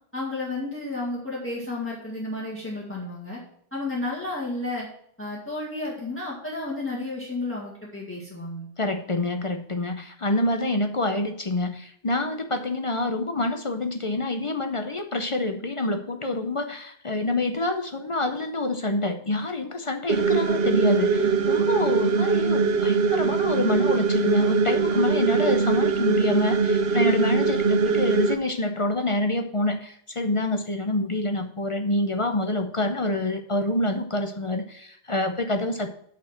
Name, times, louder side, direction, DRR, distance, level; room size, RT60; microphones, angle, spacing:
voice 1, 0.1-3.4 3.7-4.9 5.2-8.7, left 2 dB, 10° left, -4 dB, 1.9 m, -32 dB
voice 2, 8.8-35.9, left 2 dB, 35° left, 6 dB, 0.7 m, -27 dB
sound 1, 20.1-28.3, right 5 dB, 75° right, 1.0 m, -22 dB
8.8 x 4.3 x 7.4 m, 0.67 s
omnidirectional pair, 1.0 m